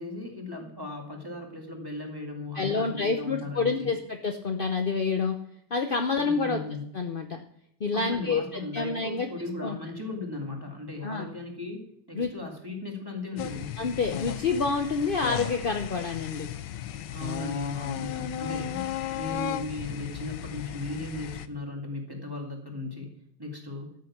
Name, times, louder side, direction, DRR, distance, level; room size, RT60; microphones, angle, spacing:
voice 1, 0.0-4.0 6.1-6.8 7.9-11.8 12.1-13.7 17.1-18.8 19.1-23.1 23.4-23.9, left 2 dB, 10° right, 0 dB, 2.1 m, -37 dB
voice 2, 2.5-5.4 5.7-6.6 6.9-7.4 7.8-9.3 9.6-9.8 11.0-11.3 12.1-12.3 13.8-16.5, left 4 dB, 60° left, 5 dB, 0.5 m, -28 dB
Tony night Wookiee tooting-, 13.4-21.5, left 11 dB, 75° left, 1.3 m, -35 dB
13.0 x 6.6 x 7.2 m, 0.70 s
omnidirectional pair, 2.0 m